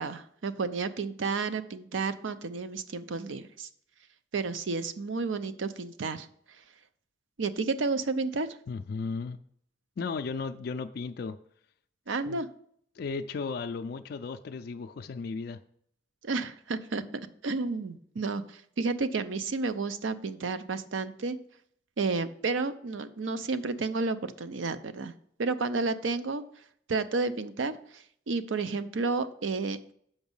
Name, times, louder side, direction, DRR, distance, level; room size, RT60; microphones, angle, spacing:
voice 1, 0.0-3.7 4.3-6.3 7.4-8.5 12.1-12.5 16.2-17.0 17.4-21.4 22.0-25.1 25.4-26.4 26.9-27.8 28.3-29.9, right 4 dB, 85° right, 12 dB, 0.6 m, -31 dB
voice 2, 8.7-9.4 10.0-11.4 12.1-12.4 13.0-15.6, left 4 dB, 55° left, 6 dB, 0.3 m, -35 dB
7.1 x 5.3 x 5.4 m, 0.65 s
head